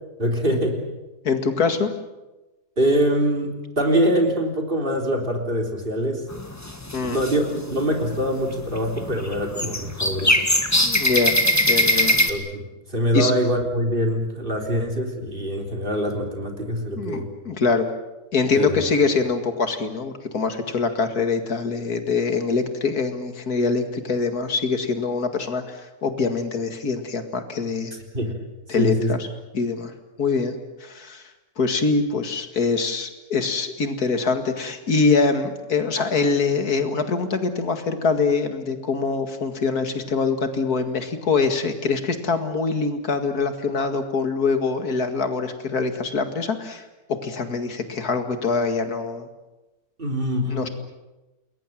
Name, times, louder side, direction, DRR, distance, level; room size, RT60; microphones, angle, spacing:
voice 1, 0.2-0.8 2.8-6.2 7.1-10.5 12.3-12.6 12.9-17.3 18.6-18.8 28.1-28.4 28.8-29.1 50.0-50.7, equal, 35° right, 2 dB, 3.9 m, -24 dB
voice 2, 1.2-1.9 6.9-7.2 10.8-12.2 13.1-13.3 17.0-17.9 18.3-27.9 28.7-29.3 29.5-29.9 30.2-30.6 30.8-31.2 31.6-46.8 47.1-49.3 50.5-50.7, left 4 dB, 90° left, 7 dB, 2.6 m, -24 dB
sound 1, 6.3-7.3 7.8-8.2 8.6-12.3, left 1 dB, 10° left, 1.6 m, -21 dB
28.5 x 21.5 x 7.6 m, 1.1 s
omnidirectional pair, 1.6 m